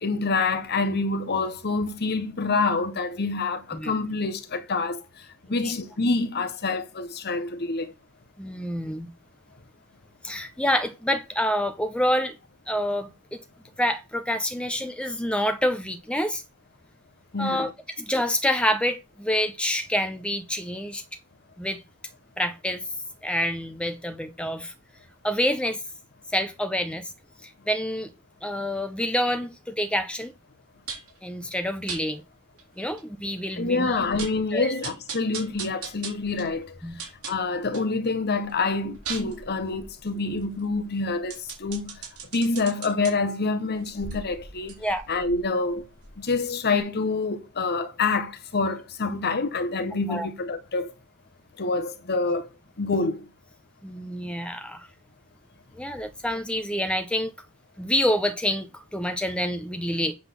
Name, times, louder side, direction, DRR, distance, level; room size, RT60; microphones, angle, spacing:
voice 1, 0.0-5.0 5.5-7.9 17.3-17.7 33.6-36.8 37.3-41.9 42.3-44.7 45.1-45.9 46.2-50.9 51.6-52.5 52.8-53.3, left 3 dB, 45° left, 1.0 m, -27 dB
voice 2, 8.4-9.1 10.2-12.4 12.7-13.4 13.8-16.4 17.4-17.7 18.1-21.0 21.6-21.8 22.4-22.8 23.2-24.7 25.2-25.8 26.3-27.1 27.4-28.1 28.4-30.3 31.2-32.2 32.8-34.0 34.5-34.7 36.8-37.0 44.8-45.0 50.1-50.3 53.8-54.9 55.8-57.3 57.8-60.1, equal, 5° left, 0.7 m, -27 dB
sound 1, 30.9-31.2 31.9-32.0 32.6-32.7 33.0-33.1 33.5-33.6 33.9-34.4 34.8-37.9 38.3-43.1 43.7-46.4 46.7-46.8, right 6 dB, 75° right, 3.7 m, -39 dB
8.0 x 4.0 x 6.9 m
head